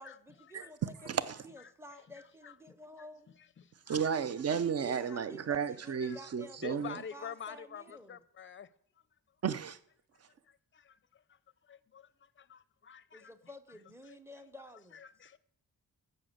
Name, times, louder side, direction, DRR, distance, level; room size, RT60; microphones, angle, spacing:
voice 1, 0.0-3.3 4.8-8.2 13.1-15.0, left 1 dB, 5° right, 0.7 m, -52 dB
voice 2, 1.1-1.4 3.9-7.0 9.4-9.8, right 7 dB, 45° right, 0.6 m, -33 dB
voice 3, 3.6-4.0 4.5-4.6 5.1-5.2 6.0-6.2 6.6-8.7 10.5-11.4 11.7-13.3 14.0-14.2 14.9-15.4, left 7 dB, 35° left, 0.5 m, -48 dB
11.0 x 6.7 x 7.8 m
wide cardioid pair, 175°, 35 cm